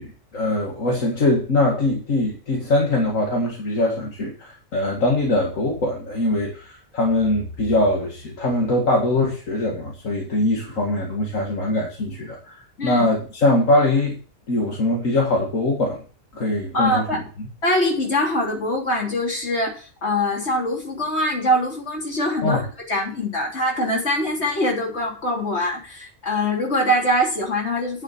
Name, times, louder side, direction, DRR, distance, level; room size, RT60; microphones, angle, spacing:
voice 1, 0.0-14.2 14.5-16.0 16.3-17.5 22.4-22.6, left 2 dB, 70° left, -1 dB, 2.4 m, -22 dB
voice 2, 16.7-17.2 17.6-28.0, left 1 dB, 50° left, -1 dB, 3.8 m, -23 dB
9.6 x 7.3 x 7.2 m, 0.38 s
omnidirectional pair, 1.4 m